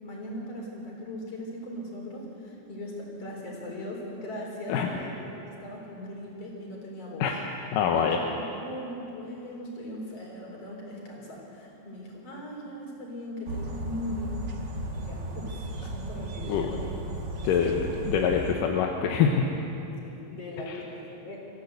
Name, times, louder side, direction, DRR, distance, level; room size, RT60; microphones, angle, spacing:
voice 1, 0.0-5.1 5.4-7.4 7.9-14.4 14.9-16.9 17.6-17.8 20.0-21.4, left 1 dB, 40° left, -1 dB, 4.9 m, -39 dB
voice 2, 7.7-8.2 16.5-16.7 17.4-17.7 18.1-19.5 20.7-20.8, left 7 dB, 70° left, 2 dB, 2.5 m, -24 dB
sound 1, 13.5-18.5, right 1 dB, 50° right, 1.3 m, -35 dB
25.0 x 15.0 x 8.1 m, 2.9 s
omnidirectional pair, 4.3 m